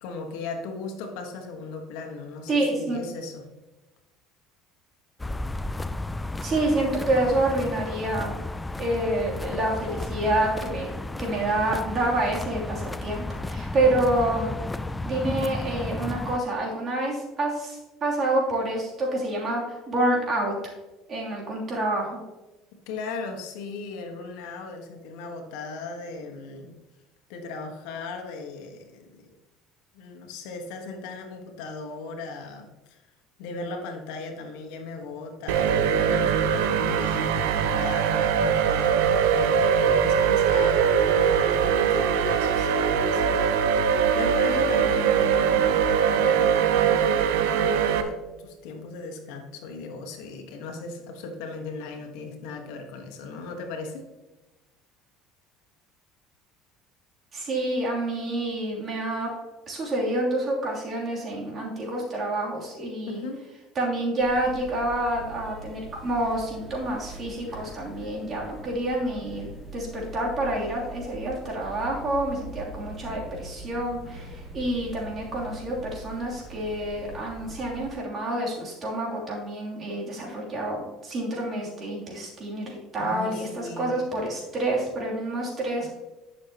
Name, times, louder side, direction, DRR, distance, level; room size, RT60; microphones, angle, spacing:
voice 1, 0.0-3.5 22.9-26.7 27.3-29.3 29.9-33.0 33.4-43.7 44.1-54.1 63.1-63.4 83.0-83.9, left 3 dB, 80° left, 3 dB, 1.4 m, -37 dB
voice 2, 2.5-3.0 6.4-8.4 8.8-10.9 11.2-14.5 15.0-20.5 21.1-22.2 57.3-59.3 59.7-63.2 63.7-85.9, right 1 dB, 35° right, -3 dB, 3.0 m, -28 dB
footsteps in dirt near freeway, 5.2-16.4, left 2 dB, 10° left, 0.3 m, -33 dB
sound 1, 35.5-48.0, right 7 dB, 85° right, 0.7 m, -22 dB
sound 2, 64.2-77.9, right 1 dB, 10° right, 2.1 m, -42 dB
11.0 x 6.6 x 2.9 m, 1.1 s
supercardioid pair, 115°, 0 cm